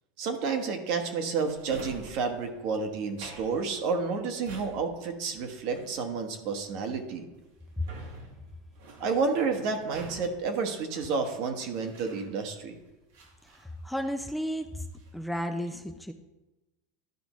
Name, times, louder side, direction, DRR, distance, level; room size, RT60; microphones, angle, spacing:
voice 1, 0.2-7.3 9.0-12.8, right 4 dB, 60° right, 5 dB, 1.2 m, -30 dB
Drawer open or close, 1.4-12.7 13.1-14.4 14.7-15.3, right 3 dB, 80° right, 1.7 m, -48 dB
voice 2, 13.6-14.8 15.1-16.1, equal, ahead, 6 dB, 0.4 m, -33 dB
12.0 x 5.1 x 3.1 m, 1.1 s
supercardioid pair, 120°, 0 cm